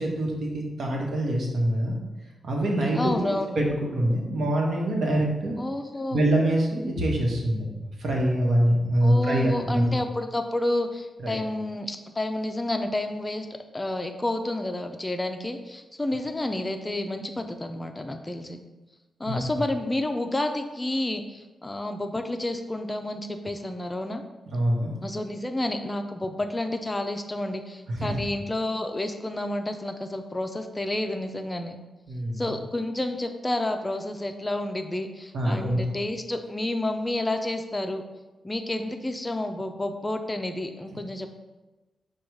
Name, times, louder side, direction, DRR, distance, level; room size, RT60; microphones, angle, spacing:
voice 1, 0.0-2.0 2.4-3.0 3.3-3.7 3.9-5.6 6.1-7.7 8.0-9.9 11.2-11.4 19.3-19.4 24.5-24.9 27.9-28.2 32.1-32.5 35.3-35.8, right 1 dB, 70° right, -1 dB, 1.0 m, -24 dB
voice 2, 2.9-3.5 5.6-6.2 9.0-13.5 13.7-18.6 19.2-24.2 25.0-31.8 32.4-38.0 38.4-41.3, left 1 dB, 20° left, 6 dB, 0.4 m, -30 dB
5.0 x 2.3 x 4.6 m, 1.1 s
cardioid pair, 80°, 0 cm